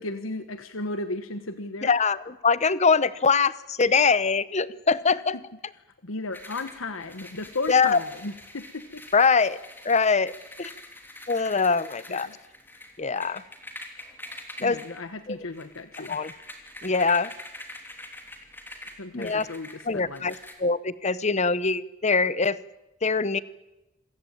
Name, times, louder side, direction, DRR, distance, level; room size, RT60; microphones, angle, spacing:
voice 1, 0.0-2.0 6.0-9.0 10.6-10.7 12.1-12.3 14.6-16.2 19.0-20.4, left 2 dB, 70° left, 10 dB, 1.3 m, -35 dB
voice 2, 1.8-5.4 7.7-8.0 9.1-9.6 9.8-10.3 10.6-10.7 11.3-12.3 13.0-13.4 14.6-14.8 15.3-15.4 16.1-16.3 16.8-17.3 19.1-19.5 19.9-20.3 20.6-22.6 23.0-23.4, left 4 dB, 35° left, 17 dB, 0.9 m, -23 dB
sound 1, 6.3-20.5, left 1 dB, 10° left, 3.2 m, -45 dB
27.0 x 16.0 x 9.2 m, 0.98 s
head